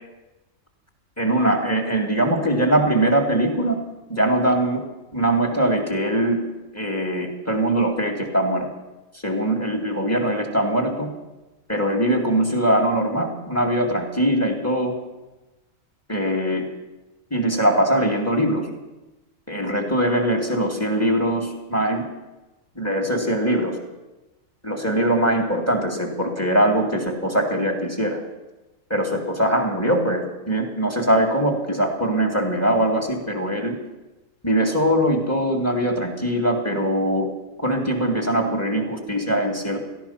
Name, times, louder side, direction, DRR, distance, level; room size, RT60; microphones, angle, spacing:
voice 1, 1.2-3.8 4.1-4.8 5.1-6.4 6.7-8.7 9.2-11.1 11.7-14.9 16.1-16.6 17.3-18.7 19.5-22.0 22.8-23.8 24.6-28.2 28.9-33.8 34.4-37.3 37.6-39.8, right 1 dB, 10° left, 2 dB, 2.3 m, -22 dB
17.5 x 14.0 x 5.8 m, 1.1 s
omnidirectional pair, 1.4 m